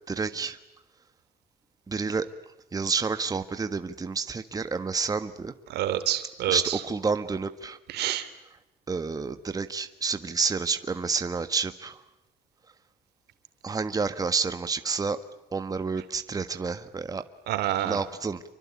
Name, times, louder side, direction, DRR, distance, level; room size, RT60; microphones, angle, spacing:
voice 1, 0.1-0.6 1.9-2.3 2.7-5.5 6.5-8.1 8.9-12.0 13.6-15.2 15.5-17.2 17.8-18.4, right 4 dB, 20° right, 9 dB, 1.4 m, -29 dB
voice 2, 5.7-6.8 7.9-8.3 17.5-18.0, right 12 dB, 75° right, 11 dB, 2.9 m, -28 dB
28.0 x 24.0 x 8.5 m, 0.95 s
cardioid pair, 110°, 17 cm